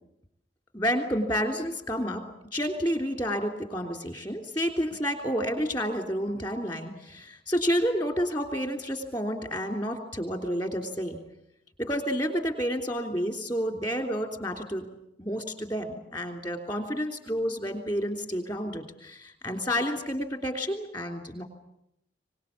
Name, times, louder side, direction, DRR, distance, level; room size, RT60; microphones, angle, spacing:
voice 1, 0.7-2.2 2.5-11.2 11.8-14.9 15.2-21.4, equal, 25° left, 5 dB, 3.2 m, -30 dB
24.0 x 20.0 x 8.4 m, 0.79 s
head